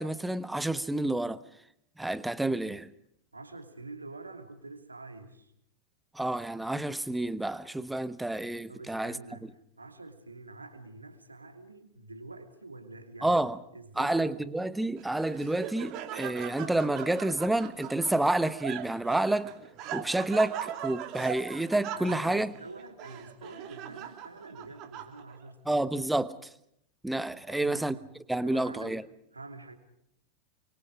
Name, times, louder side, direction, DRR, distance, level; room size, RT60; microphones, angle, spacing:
voice 1, 0.0-1.4 2.0-2.9 6.1-9.2 13.2-13.6 14.0-19.5 19.9-22.5 25.7-26.3 27.0-28.0 28.3-29.0, right 2 dB, 5° right, 1.0 m, -29 dB
voice 2, 3.3-5.5 8.7-14.6 21.9-25.8 27.5-28.0 28.4-29.0 29.3-29.8, right 3 dB, 80° right, 2.9 m, -46 dB
Laughter, 15.0-25.5, right 10 dB, 40° right, 3.1 m, -40 dB
29.0 x 24.5 x 4.9 m
figure-of-eight pair, 90°, 0 cm